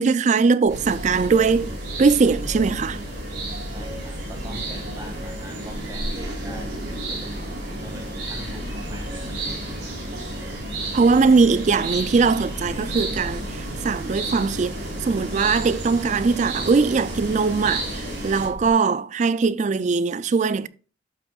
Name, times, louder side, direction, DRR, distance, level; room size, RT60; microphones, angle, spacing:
voice 1, 0.0-1.7 2.0-3.0 10.9-14.8 15.0-20.7, right 4 dB, 40° right, 0.3 m, -20 dB
sound 1, 0.6-18.7, equal, 85° left, 2.5 m, -36 dB
sound 2, 0.7-18.5, right 2 dB, 60° right, 4.1 m, -33 dB
voice 2, 3.7-9.3, equal, 20° right, 1.9 m, -42 dB
12.0 x 6.2 x 2.4 m
head